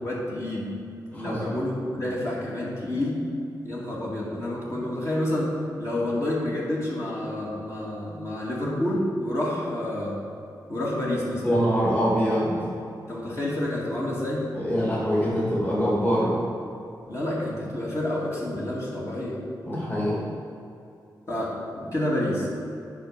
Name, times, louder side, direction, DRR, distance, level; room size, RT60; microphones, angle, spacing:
voice 1, 0.0-0.7 1.1-3.2 3.6-5.5 5.8-10.2 10.7-11.6 13.1-14.4 17.1-19.4 21.3-22.5, left 1 dB, 40° left, -6 dB, 2.3 m, -29 dB
voice 2, 11.4-12.6 14.5-16.4 19.7-20.2, equal, 25° left, -6 dB, 2.1 m, -24 dB
9.0 x 5.5 x 6.5 m, 2.7 s
wide cardioid pair, 105°, 8 cm